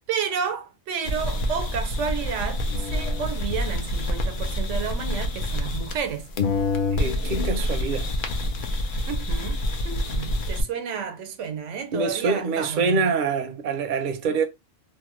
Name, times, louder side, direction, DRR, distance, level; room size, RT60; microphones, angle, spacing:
voice 1, 0.1-6.3 9.1-13.2 14.3-14.4, right 7 dB, 90° right, 1.0 m, -31 dB
sound 1, 1.0-6.1 6.4-10.6, left 1 dB, 55° left, 0.6 m, -27 dB
voice 2, 6.9-8.1 8.9-9.1 11.9-14.4, right 4 dB, 55° right, 0.6 m, -25 dB
2.8 x 2.2 x 2.9 m
omnidirectional pair, 1.2 m